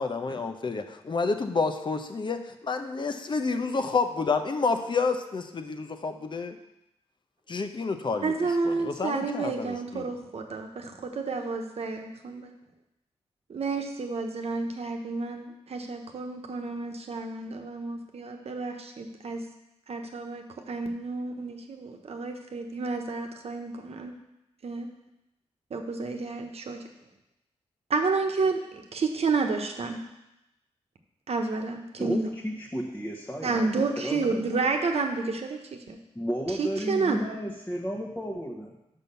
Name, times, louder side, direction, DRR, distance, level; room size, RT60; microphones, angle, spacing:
voice 1, 0.0-6.6 7.5-8.3 8.6-10.1, left 4 dB, 40° left, 7 dB, 0.8 m, -29 dB
voice 2, 8.2-12.5 13.5-19.4 19.9-24.1 24.6-24.9 25.7-26.8 27.9-30.0 31.3-32.3 33.4-36.0 36.5-37.2, right 4 dB, 60° right, 3 dB, 1.1 m, -30 dB
voice 3, 32.0-34.4 36.1-38.8, equal, 15° left, -3 dB, 1.1 m, -33 dB
6.0 x 5.5 x 6.9 m, 0.90 s
cardioid pair, 80°, 12 cm